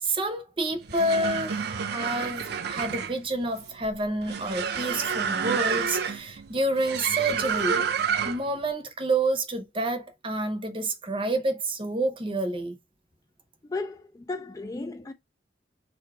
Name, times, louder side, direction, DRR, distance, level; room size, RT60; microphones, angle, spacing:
voice 1, 0.0-7.9 8.2-12.7, right 2 dB, 30° right, 0.7 m, -28 dB
sound 1, 0.7-8.6, right 6 dB, 60° right, 0.5 m, -29 dB
voice 2, 13.6-15.1, left 3 dB, 20° left, 0.3 m, -34 dB
3.5 x 2.7 x 4.6 m
head